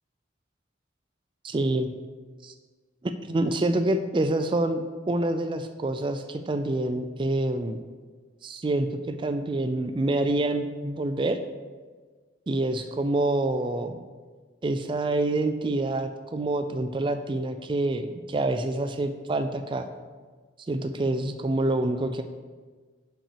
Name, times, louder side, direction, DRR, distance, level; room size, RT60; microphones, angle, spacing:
voice 1, 1.4-1.9 2.4-2.5 3.2-7.8 8.4-11.4 12.5-14.0 14.6-19.9 20.7-22.2, right 2 dB, 25° right, 8 dB, 0.3 m, -27 dB
5.8 x 5.4 x 6.7 m, 1.4 s
head